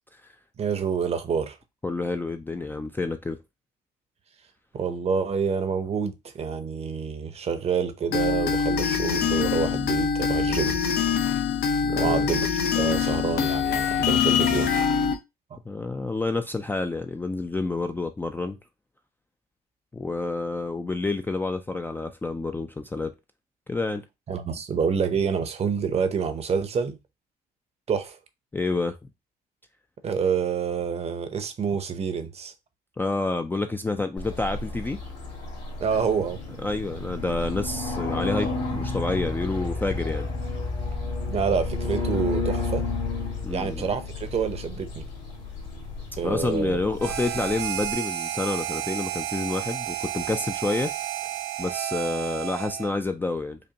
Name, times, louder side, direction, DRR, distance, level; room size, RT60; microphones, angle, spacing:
voice 1, 0.6-1.6 4.7-10.8 11.9-14.7 24.3-27.0 27.9-28.2 30.0-32.5 35.8-36.4 41.3-42.8 43.5-45.0 46.2-46.8, right 6 dB, 40° right, 0.7 m, -27 dB
voice 2, 1.8-3.4 11.8-12.3 15.7-18.6 19.9-23.1 23.7-24.0 28.5-29.0 33.0-35.0 36.6-40.3 43.4-43.9 46.2-50.9 51.6-53.6, left 3 dB, 10° left, 0.4 m, -28 dB
sound 1, 8.1-15.1, left 6 dB, 70° left, 0.8 m, -24 dB
sound 2, 34.2-47.9, left 3 dB, 85° left, 2.1 m, -32 dB
Harmonica, 47.0-53.0, right 13 dB, 80° right, 0.5 m, -31 dB
5.2 x 2.2 x 2.8 m
cardioid pair, 110°, 17 cm